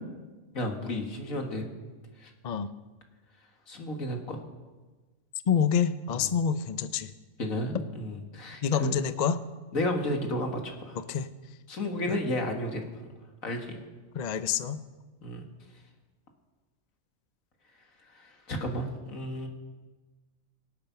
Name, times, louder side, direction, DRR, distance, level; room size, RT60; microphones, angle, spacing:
voice 1, 0.5-1.7 2.2-2.3 3.7-4.4 6.1-6.3 7.4-9.0 9.7-11.0 11.7-12.8 13.4-13.8 15.2-15.4 18.1-19.5, left 1 dB, 85° left, 3 dB, 2.3 m, -32 dB
voice 2, 5.5-7.1 8.6-9.4 11.1-11.3 14.1-14.8, left 7 dB, 45° left, 12 dB, 0.6 m, -27 dB
24.5 x 8.7 x 5.9 m, 1.3 s
omnidirectional pair, 1.4 m